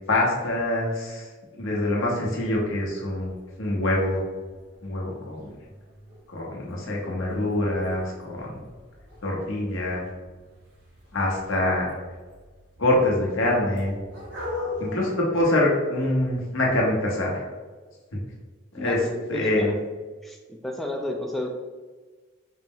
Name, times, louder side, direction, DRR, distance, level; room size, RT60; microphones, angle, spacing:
voice 1, 0.1-1.3 1.5-3.3 3.6-4.2 4.8-5.5 6.3-8.6 9.2-10.0 11.1-11.9 12.8-14.0 14.8-17.5 18.7-19.0 19.3-19.7, left 1 dB, 80° left, -3 dB, 0.9 m, -25 dB
sound 1, 3.3-14.9, left 3 dB, 60° right, 1.1 m, -42 dB
voice 2, 18.8-19.8 20.2-21.5, left 1 dB, ahead, 1 dB, 0.3 m, -32 dB
4.2 x 2.0 x 3.7 m, 1.4 s
head